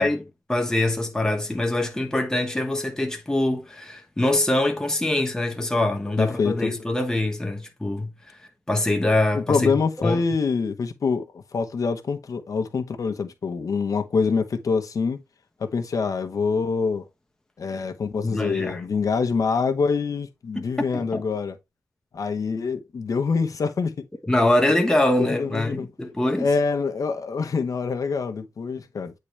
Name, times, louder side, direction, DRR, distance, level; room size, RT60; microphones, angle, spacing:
voice 1, 0.0-8.1 8.7-9.7 10.0-10.2 18.2-18.8 20.6-20.7 20.9-21.2 24.3-26.5, left 1 dB, 10° left, 1.1 m, -24 dB
voice 2, 6.2-6.7 9.3-15.2 15.6-17.0 17.6-21.6 22.1-23.9 25.2-25.9 26.4-29.1, left 5 dB, 55° left, 1.0 m, -25 dB
8.6 x 3.8 x 3.2 m
wide cardioid pair, 160°, 7 cm